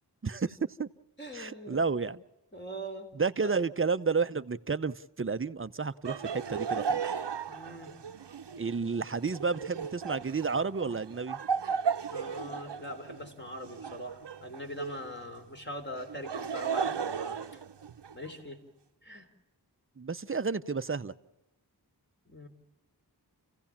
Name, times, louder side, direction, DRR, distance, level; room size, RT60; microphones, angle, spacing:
voice 1, 0.2-0.9 1.3-2.2 3.1-7.0 8.6-11.4 20.0-21.1, right 4 dB, 30° right, 13 dB, 0.7 m, -31 dB
voice 2, 1.2-1.8 2.5-3.1 7.5-7.9 12.1-17.6 18.1-18.6 19.0-19.3 22.3-22.5, equal, 25° left, 3 dB, 3.7 m, -42 dB
Laughter, 6.0-15.1 16.0-18.3, right 6 dB, 85° right, 0.9 m, -35 dB
29.5 x 16.0 x 7.3 m, 0.98 s
wide cardioid pair, 45°, 41 cm